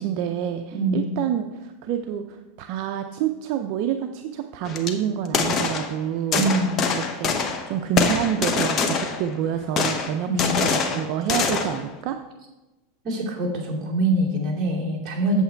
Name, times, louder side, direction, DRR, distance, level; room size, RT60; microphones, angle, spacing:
voice 1, 0.0-6.5 6.9-7.4 7.7-12.2, right 9 dB, 50° right, 6 dB, 0.5 m, -28 dB
voice 2, 0.7-1.2 6.3-6.9 10.2-10.6 13.0-15.4, right 2 dB, 25° right, -4 dB, 2.6 m, -24 dB
sound 1, 4.7-4.9 5.3-6.0 6.3-7.7 8.0-9.3 9.8-11.8, left 5 dB, 30° left, 1.0 m, -24 dB
8.2 x 7.6 x 4.5 m, 1.1 s
supercardioid pair, 145°, 0 cm